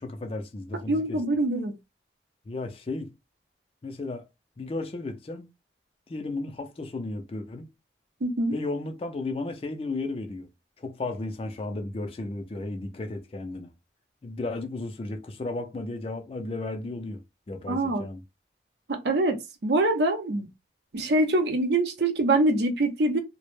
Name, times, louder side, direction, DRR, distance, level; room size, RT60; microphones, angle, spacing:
voice 1, 0.0-1.2 2.5-3.1 3.8-4.2 4.6-5.5 6.1-7.7 8.5-10.5 10.8-13.7 14.2-17.2 17.5-18.2, left 2 dB, 30° left, 0.3 m, -34 dB
voice 2, 0.9-1.7 8.2-8.5 17.7-18.1 18.9-19.4 19.6-20.5 20.9-23.2, right 2 dB, 65° right, 0.5 m, -24 dB
2.0 x 2.0 x 3.0 m
head